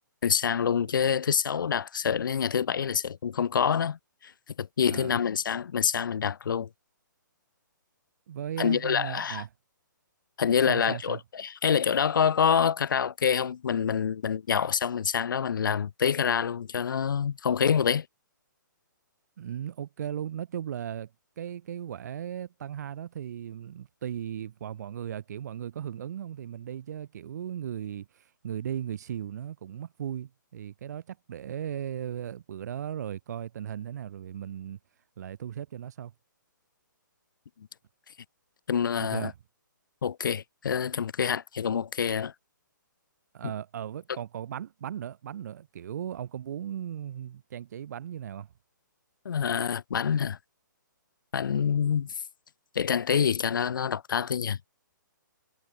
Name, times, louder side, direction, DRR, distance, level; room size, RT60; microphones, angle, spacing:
voice 1, 0.2-4.3 4.6-6.7 8.6-9.4 10.4-18.1 38.7-39.3 40.0-42.3 49.2-50.4 51.3-52.1 52.7-54.6, left 7 dB, 75° left, 0.5 m, -26 dB
voice 2, 8.3-9.5 10.7-11.2 19.4-21.1 21.4-34.8 35.2-36.1 39.0-39.3 43.3-48.5, right 10 dB, 55° right, 1.5 m, -37 dB
hypercardioid pair, 145°, 11 cm